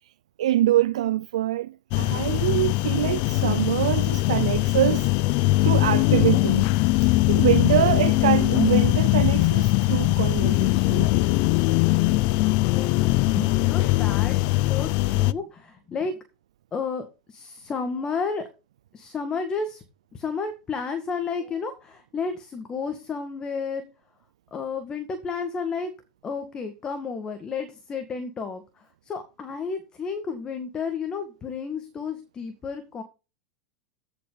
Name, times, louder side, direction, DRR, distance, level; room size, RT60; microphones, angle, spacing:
voice 1, 0.4-5.1 5.6-6.7 7.0-11.1, right 13 dB, 90° right, 0.4 m, -24 dB
sound 1, 1.9-15.3, left 19 dB, 55° left, 0.5 m, -21 dB
voice 2, 12.7-16.2 16.7-18.5 18.9-19.8 20.1-23.8 24.5-25.9 26.2-33.0, left 5 dB, 25° left, 2.0 m, -32 dB
14.5 x 5.8 x 4.0 m
supercardioid pair, 125°, 3 cm